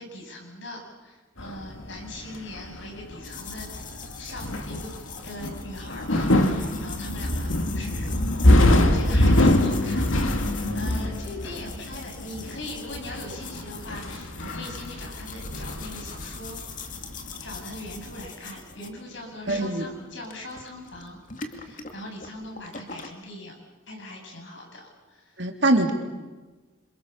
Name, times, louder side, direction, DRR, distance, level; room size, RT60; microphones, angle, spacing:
voice 1, 0.0-3.8 4.2-4.9 5.2-17.0 17.4-23.6 23.9-25.5, left 1 dB, 65° left, 1 dB, 8.0 m, -41 dB
sound 1, 1.4-17.3 17.6-18.2, left 1 dB, 85° left, 2.4 m, -24 dB
sound 2, 3.2-23.1, left 5 dB, 40° left, 2.4 m, -43 dB
voice 2, 19.5-19.9 25.4-25.9, right 2 dB, 60° right, 4 dB, 3.3 m, -22 dB
28.0 x 27.0 x 7.1 m, 1.3 s
head